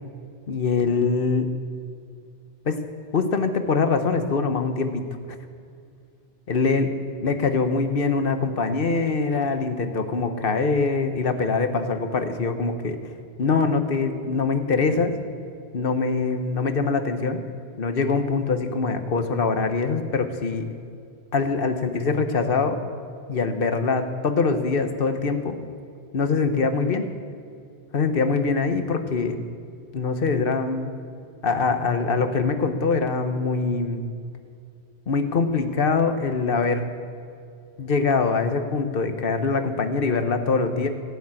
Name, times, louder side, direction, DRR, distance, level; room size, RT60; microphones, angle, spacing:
voice 1, 0.5-1.5 2.6-2.8 3.1-5.0 6.5-6.9 7.2-13.0 13.4-15.1 15.7-17.4 17.8-20.7 21.3-22.8 23.3-25.6 26.1-27.1 27.9-29.4 29.9-30.9 31.4-34.0 35.1-36.9 37.8-40.9, left 4 dB, 60° left, 8 dB, 1.2 m, -23 dB
15.5 x 7.2 x 8.9 m, 2.4 s
omnidirectional pair, 1.1 m